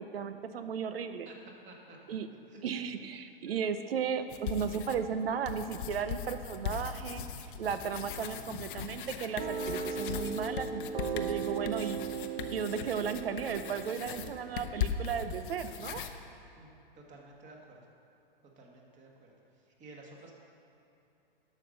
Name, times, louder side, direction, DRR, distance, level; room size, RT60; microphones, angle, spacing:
voice 1, 0.0-1.3 2.1-2.3 2.6-12.1 12.5-16.0, right 7 dB, 90° right, 10 dB, 0.7 m, -35 dB
voice 2, 1.6-2.0 2.5-2.9 16.6-16.7 16.9-17.8 18.4-20.3, right 2 dB, 25° right, 0 dB, 1.6 m, -53 dB
sound 1, 4.3-5.1 5.5-16.1, left 8 dB, 60° left, 0.8 m, -39 dB
sound 2, 9.4-14.9, right 6 dB, 45° right, 0.9 m, -38 dB
12.0 x 5.3 x 6.4 m, 2.8 s
hypercardioid pair, 140°, 29 cm